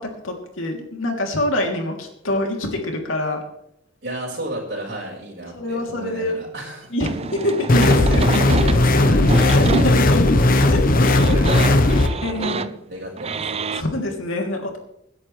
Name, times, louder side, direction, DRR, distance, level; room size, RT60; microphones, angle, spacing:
voice 1, 0.0-3.4 5.5-6.4 6.9-8.4 9.2-10.4 10.6-11.3 12.2-12.7 13.7-14.8, left 1 dB, 85° left, 1 dB, 3.0 m, -25 dB
voice 2, 4.0-6.9 8.6-9.3 11.0-12.6 12.9-13.5, right 1 dB, 55° right, -5 dB, 4.5 m, -32 dB
sound 1, 7.0-13.8, right 4 dB, 30° right, 0.5 m, -28 dB
sound 2, 7.7-12.1, left 2 dB, 45° left, 0.9 m, -16 dB
25.5 x 10.5 x 3.3 m, 0.78 s
head